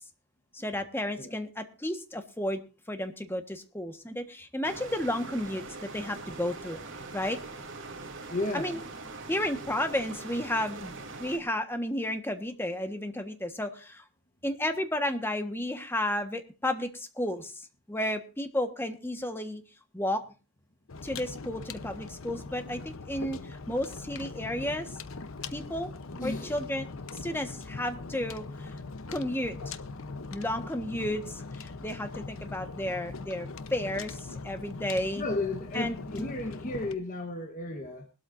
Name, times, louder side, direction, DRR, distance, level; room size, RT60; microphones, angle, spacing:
voice 1, 0.5-2.6 2.9-6.8 7.1-7.4 8.5-8.8 9.3-10.9 11.2-14.0 14.4-17.6 17.9-19.6 19.9-20.2 21.0-24.9 25.5-25.9 26.2-26.9 27.2-28.7 29.1-29.5 30.3-34.2 34.4-35.2 35.7-36.3, left 1 dB, 10° left, 1.4 m, -32 dB
sound 1, 4.6-11.4, right 3 dB, 60° right, 3.3 m, -42 dB
voice 2, 8.3-8.8 26.1-26.6 35.2-38.1, left 2 dB, 35° left, 1.3 m, -33 dB
sound 2, 20.9-36.9, left 3 dB, 70° left, 0.9 m, -41 dB
20.5 x 13.0 x 2.6 m
head